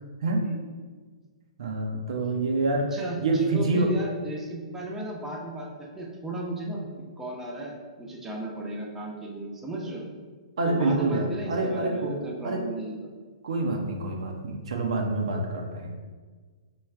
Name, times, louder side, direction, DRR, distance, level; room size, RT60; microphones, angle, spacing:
voice 1, 1.6-2.9 3.2-3.9 10.6-12.1 12.4-12.6 13.4-15.9, right 2 dB, 65° right, 1 dB, 0.6 m, -26 dB
voice 2, 2.9-10.0 10.7-13.1, right 2 dB, 10° right, -3 dB, 0.7 m, -35 dB
4.7 x 2.3 x 3.3 m, 1.4 s
hypercardioid pair, 120°, 3 cm